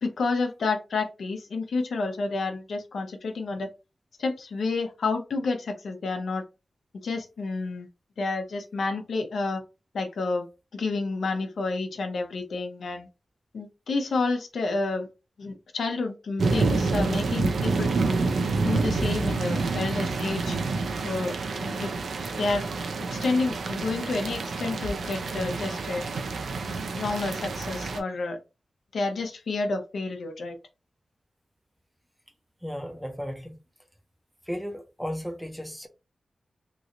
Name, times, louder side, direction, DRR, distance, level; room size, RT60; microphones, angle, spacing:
voice 1, 0.0-3.7 4.2-6.4 7.0-7.9 8.2-9.6 9.9-10.5 10.7-13.1 13.5-15.1 15.4-18.2 18.6-20.6 21.0-21.9 22.3-22.7 23.1-26.0 26.9-28.4 28.9-30.6, left 3 dB, 85° left, 0.7 m, -29 dB
sound 1, 16.4-28.0, right 3 dB, 85° right, 0.5 m, -28 dB
voice 2, 32.6-33.6 34.5-35.9, equal, ahead, 0.5 m, -34 dB
3.0 x 2.6 x 2.8 m
wide cardioid pair, 165°, 0 cm